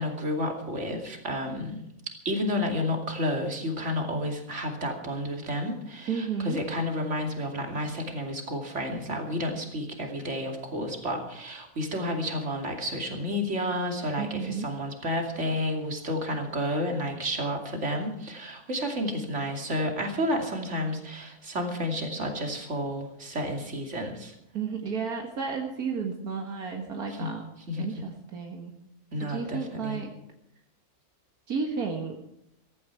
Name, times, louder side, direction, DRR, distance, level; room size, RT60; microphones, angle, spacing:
voice 1, 0.0-1.9 2.2-24.3 27.1-27.3 27.7-28.1 29.1-30.0, left 1 dB, 50° right, 3 dB, 3.0 m, -31 dB
voice 2, 6.1-6.6 14.2-14.7 24.5-27.4 27.8-28.7 29.2-30.2 31.5-32.2, right 5 dB, 75° right, 2 dB, 2.1 m, -32 dB
15.5 x 15.5 x 4.7 m, 0.79 s
omnidirectional pair, 1.6 m